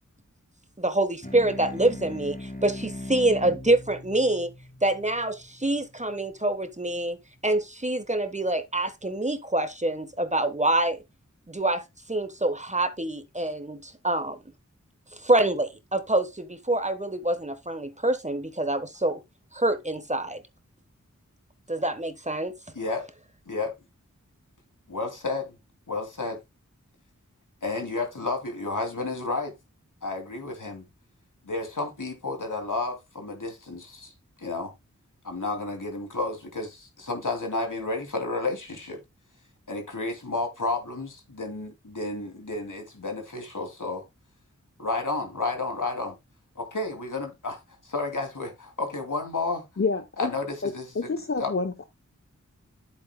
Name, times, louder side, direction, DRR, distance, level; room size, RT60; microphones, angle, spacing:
voice 1, 0.8-4.5 4.8-7.2 7.4-11.0 11.5-11.8 12.1-14.4 15.2-19.2 19.5-20.4 21.7-22.5, right 2 dB, 25° right, 1.1 m, -26 dB
sound 1, 1.2-6.1, left 1 dB, 25° left, 2.0 m, -40 dB
voice 2, 22.7-23.1 23.5-23.7 24.9-25.5 25.9-26.4 27.6-29.5 30.0-30.8 31.4-34.1 34.4-34.7 35.2-39.0 39.7-44.0 44.8-46.2 46.6-49.7 50.2-51.5, left 3 dB, 80° left, 2.6 m, -31 dB
voice 3, 49.8-50.3 50.6-51.9, left 4 dB, 45° left, 0.8 m, -28 dB
10.5 x 8.0 x 2.2 m
wide cardioid pair, 55°, 30 cm